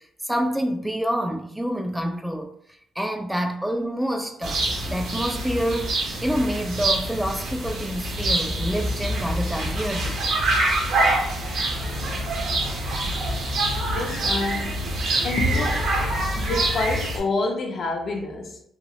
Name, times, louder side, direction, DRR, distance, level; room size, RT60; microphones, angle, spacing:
voice 1, 0.0-2.5 3.0-10.3, equal, 5° right, 0.3 m, -27 dB
sound 1, 4.4-17.2, right 1 dB, 75° right, 0.8 m, -25 dB
voice 2, 13.9-14.8 15.2-15.9 16.3-18.6, left 2 dB, 55° left, 0.6 m, -27 dB
2.9 x 2.3 x 2.9 m
cardioid pair, 90°, 0 cm